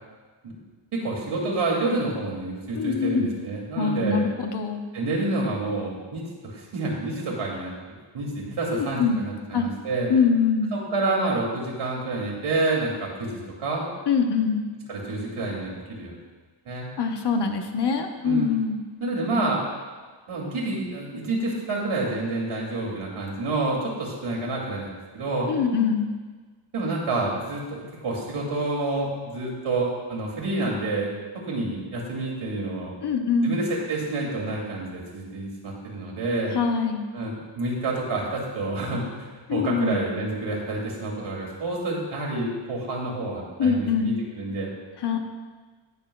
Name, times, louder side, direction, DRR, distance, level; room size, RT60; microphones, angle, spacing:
voice 1, 0.9-4.2 4.9-7.7 8.1-10.1 10.7-13.9 14.9-16.1 16.7-16.9 18.2-18.5 19.0-19.6 20.3-25.5 26.7-31.1 31.5-32.9 33.4-36.5 37.1-44.7, right 2 dB, 85° right, -3 dB, 2.6 m, -28 dB
voice 2, 2.8-3.3 3.8-4.9 8.7-9.2 9.5-9.7 10.1-10.7 14.1-14.6 17.0-18.8 25.5-26.1 33.0-33.6 36.5-37.1 39.5-40.0 43.6-44.2 45.0-45.2, left 5 dB, 55° left, 4 dB, 1.0 m, -23 dB
18.0 x 7.0 x 2.3 m, 1.4 s
wide cardioid pair, 145°, 48 cm